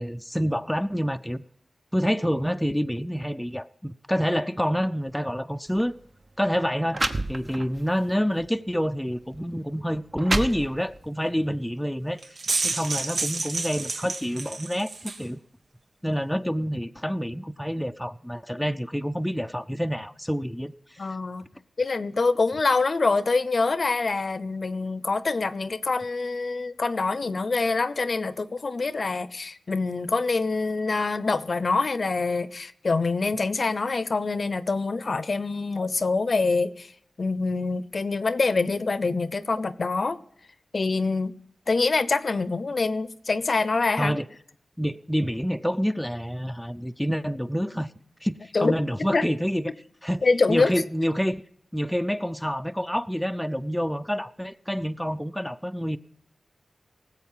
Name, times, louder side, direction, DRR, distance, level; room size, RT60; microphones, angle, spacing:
voice 1, 0.0-1.4 1.9-5.9 6.4-12.2 12.6-15.4 16.0-21.0 44.0-44.3 44.8-47.9 48.2-49.7 50.0-50.2 50.5-51.4 51.7-56.0, equal, 5° left, 0.5 m, -27 dB
sound 1, 5.7-5.9 6.6-6.7 6.9-7.8 8.4-8.6 9.3-9.4 9.9-11.1, right 2 dB, 40° right, 1.0 m, -29 dB
sound 2, 12.2-15.2, right 3 dB, 75° right, 1.3 m, -30 dB
voice 2, 21.0-21.5 21.8-36.9 37.2-40.2 40.7-41.4 41.7-44.1 48.5-48.7 49.1-49.3 50.2-50.7, left 3 dB, 55° left, 0.7 m, -25 dB
18.0 x 8.1 x 5.6 m
wide cardioid pair, 70°, 0 cm